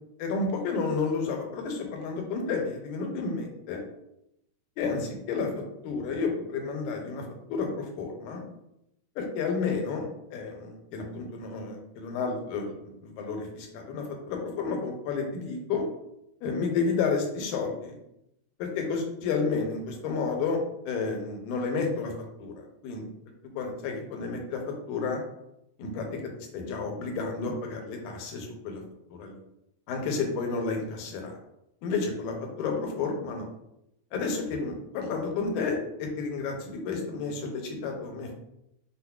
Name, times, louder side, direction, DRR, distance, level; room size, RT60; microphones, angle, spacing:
voice 1, 0.2-3.8 4.8-8.4 9.2-15.8 16.4-18.0 18.6-20.6 20.9-22.1 22.4-23.0 23.6-25.2 25.8-28.8 29.1-29.3 29.9-31.4 31.8-33.5 34.1-38.3, left 4 dB, 80° left, 2 dB, 2.0 m, -31 dB
5.5 x 2.1 x 2.3 m, 0.83 s
omnidirectional pair, 3.5 m